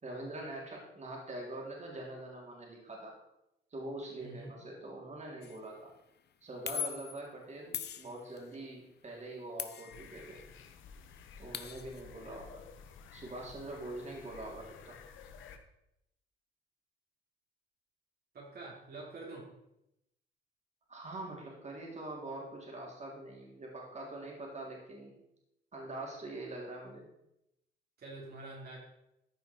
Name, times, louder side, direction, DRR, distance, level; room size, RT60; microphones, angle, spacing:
voice 1, 0.0-3.2 3.7-5.9 6.4-10.4 11.4-12.6 13.1-15.0 20.9-25.1 25.7-27.1, right 2 dB, 35° right, -2 dB, 3.5 m, -44 dB
voice 2, 4.2-4.5 18.3-19.5 28.0-28.8, right 2 dB, 50° right, -4 dB, 3.2 m, -46 dB
sound 1, 5.4-5.6 6.7-7.2 7.7-8.6 9.6-10.5 10.8-10.9 11.1-12.0, left 9 dB, 55° left, 0.8 m, -40 dB
sound 2, 9.9-15.6, left 6 dB, 80° left, 1.1 m, -53 dB
14.0 x 5.6 x 4.6 m, 0.84 s
cardioid pair, 90°, 20 cm